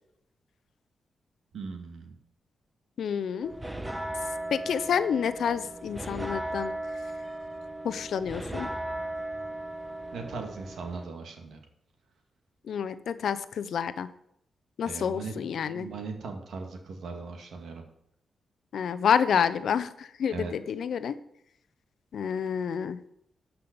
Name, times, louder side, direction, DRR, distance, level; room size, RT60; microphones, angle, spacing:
voice 1, 1.5-2.2 10.1-11.6 14.8-15.3 15.6-17.8 20.3-20.5, right 4 dB, 80° right, 3 dB, 2.1 m, -39 dB
voice 2, 3.0-3.5 4.5-6.7 7.8-8.7 12.7-14.1 14.8-15.9 18.7-21.1 22.1-23.0, left 7 dB, 75° left, 13 dB, 0.7 m, -28 dB
sound 1, 3.4-11.1, right 1 dB, 10° right, 1.3 m, -36 dB
12.5 x 5.7 x 6.9 m, 0.76 s
cardioid pair, 70°, 0 cm